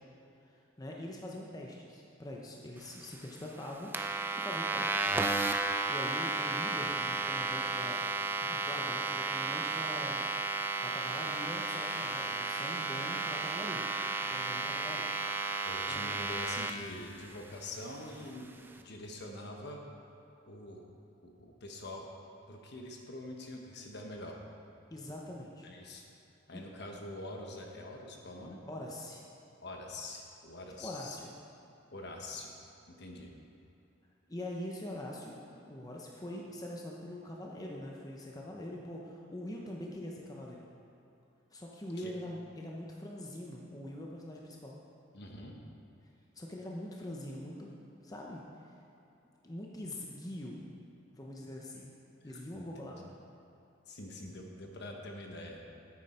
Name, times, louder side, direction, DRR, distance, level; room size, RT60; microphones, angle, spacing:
voice 1, 0.4-3.9 4.3-5.1 5.9-8.0 8.4-10.3 10.8-13.9 14.3-15.1 15.8-16.1 24.9-25.7 26.5-26.6 28.6-29.2 30.8-31.3 34.3-40.7 41.5-44.8 46.3-47.7 48.0-48.4 49.4-50.7 51.2-51.9 52.2-53.1, left 1 dB, 20° left, -2 dB, 0.8 m, -43 dB
sound 1, 3.9-16.7, right 3 dB, 10° right, 0.4 m, -33 dB
voice 2, 15.6-19.8 20.5-20.8 21.2-22.1 22.5-24.4 25.6-26.0 26.5-28.6 29.6-31.2 31.9-32.5 32.9-33.3 42.0-42.1 45.1-45.6 52.2-53.0 53.9-55.6, left 1 dB, 55° left, 1 dB, 1.2 m, -45 dB
9.7 x 8.6 x 4.4 m, 2.9 s
head